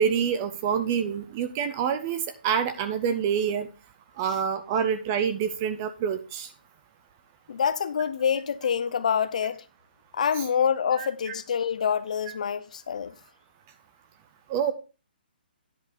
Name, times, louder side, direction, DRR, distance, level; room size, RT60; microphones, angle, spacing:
voice 1, 0.0-3.7 4.2-6.5 10.4-10.5 11.0-11.3 14.5-14.7, right 7 dB, 15° right, 0.3 m, -27 dB
voice 2, 7.5-9.6 10.1-13.1, left 7 dB, 45° left, 0.6 m, -26 dB
10.0 x 4.6 x 5.0 m
hypercardioid pair, 180°, 5 cm